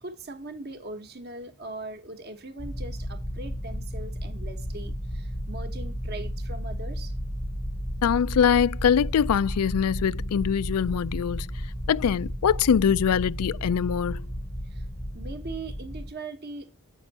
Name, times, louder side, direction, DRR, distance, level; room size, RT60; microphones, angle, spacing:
voice 1, 0.0-7.2 14.7-14.8 15.1-16.9, right 2 dB, 45° right, 1.0 m, -40 dB
sound 1, 2.6-16.1, equal, 10° left, 0.7 m, -33 dB
voice 2, 8.0-11.5 11.9-14.2, left 7 dB, 80° left, 0.4 m, -23 dB
8.2 x 5.4 x 4.1 m
head